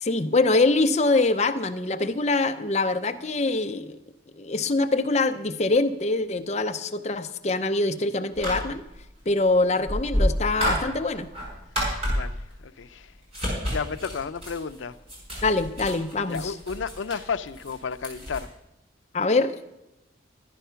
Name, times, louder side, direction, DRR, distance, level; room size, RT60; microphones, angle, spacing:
voice 1, 0.0-4.0 4.4-8.8 9.3-11.3 15.4-16.5 19.1-19.5, left 3 dB, 35° left, 0.6 m, -24 dB
sound 1, 8.3-9.0 9.9-12.6 13.2-18.4, equal, 30° right, 5.5 m, -29 dB
voice 2, 12.0-13.1 13.4-15.0 16.3-18.5, left 5 dB, 80° left, 0.5 m, -33 dB
12.0 x 10.0 x 5.7 m
head